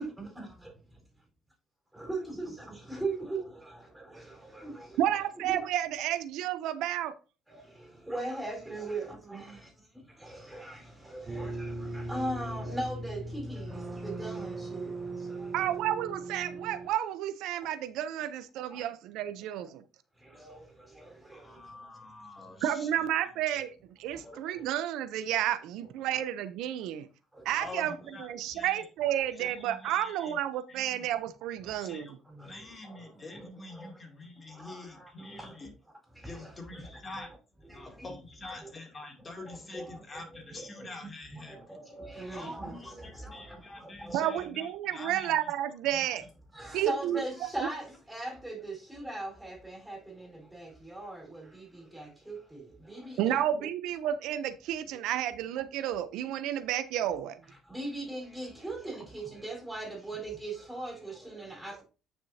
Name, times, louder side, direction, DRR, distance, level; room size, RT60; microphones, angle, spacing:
voice 1, 0.0-0.7 1.9-5.0 5.3-5.7 7.5-7.6 8.1-9.6 10.2-14.9 15.4-15.5 18.7-18.8 20.3-20.7 21.0-21.4 24.2-24.4 26.1-26.2 27.4-27.5 27.9-28.0 32.4-32.5 32.8-33.1 33.3-33.9 34.5-35.5 36.2-36.8 37.2-37.3 37.6-38.2 38.5-38.7 39.4-40.2 40.5-40.9 41.3-44.4 46.5-53.7 57.7-61.8, right 2 dB, 10° right, 4.5 m, -40 dB
voice 2, 5.0-7.1 15.5-19.8 22.6-27.1 27.4-27.9 28.2-32.1 44.1-46.3 46.7-47.2 47.6-47.7 53.2-57.4, right 11 dB, 80° right, 0.6 m, -31 dB
sound 1, 11.3-16.9, right 2 dB, 25° right, 0.9 m, -38 dB
voice 3, 21.3-23.1 27.6-28.8 29.3-30.4 30.7-31.1 31.7-32.1 32.4-35.7 36.3-37.3 37.6-41.8 42.3-45.5 45.9-46.0, left 2 dB, 30° left, 2.8 m, -46 dB
9.4 x 6.2 x 2.8 m
supercardioid pair, 80°, 0 cm